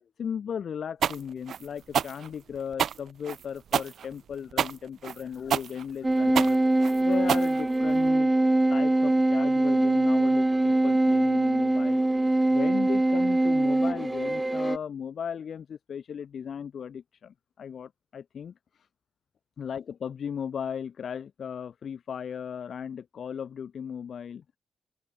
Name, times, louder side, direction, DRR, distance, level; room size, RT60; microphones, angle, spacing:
voice 1, 0.2-6.6 7.0-8.3 8.7-12.0 12.5-18.5 19.6-24.4, left 7 dB, 60° left, 5.0 m, -36 dB
sound 1, 1.0-8.1, right 8 dB, 70° right, 1.0 m, -29 dB
sound 2, 6.0-14.8, right 2 dB, 10° right, 2.1 m, -23 dB
open air
wide cardioid pair, 160°, 0 cm